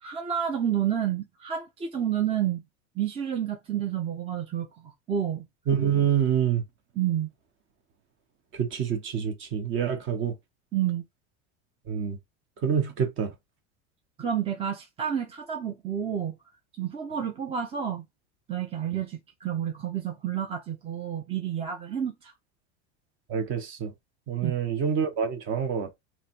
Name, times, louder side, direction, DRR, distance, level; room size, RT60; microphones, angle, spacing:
voice 1, 0.0-2.6 3.0-5.4 7.0-7.3 10.7-11.0 14.2-16.4 16.8-18.0 18.5-22.3 24.4-24.5, right 9 dB, 15° right, 0.6 m, -30 dB
voice 2, 5.7-6.6 8.5-10.3 11.9-12.2 12.6-13.3 23.3-23.9 24.3-25.9, right 8 dB, 35° right, 1.1 m, -26 dB
3.2 x 3.0 x 4.4 m
supercardioid pair, 150°, 34 cm